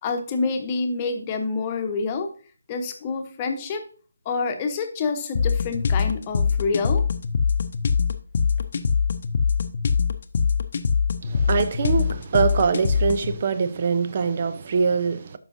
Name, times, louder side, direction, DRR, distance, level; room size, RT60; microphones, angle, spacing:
voice 1, 0.0-2.3 2.7-3.8 4.2-7.0, left 4 dB, 25° left, 1.1 m, -27 dB
sound 1, 5.3-13.3, left 5 dB, 45° left, 0.7 m, -23 dB
voice 2, 11.2-15.4, right 5 dB, 40° right, 0.7 m, -23 dB
12.0 x 5.6 x 2.7 m
figure-of-eight pair, 150°, 0 cm